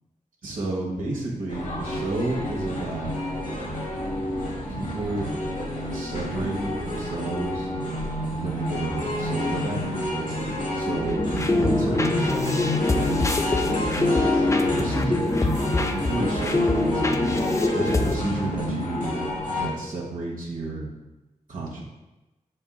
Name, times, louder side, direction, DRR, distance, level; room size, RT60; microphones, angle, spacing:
voice 1, 0.4-3.2 4.7-5.3 5.9-7.7 8.3-10.4 10.7-12.2 12.8-14.4 14.7-19.3 19.6-20.9 21.5-21.8, right 2 dB, 75° right, -3 dB, 1.0 m, -31 dB
sound 1, 1.5-19.7, left 1 dB, 70° left, 1.4 m, -29 dB
sound 2, 11.1-18.2, left 2 dB, 20° left, 0.4 m, -24 dB
4.7 x 4.4 x 2.3 m, 1.0 s
cardioid pair, 50°, 14 cm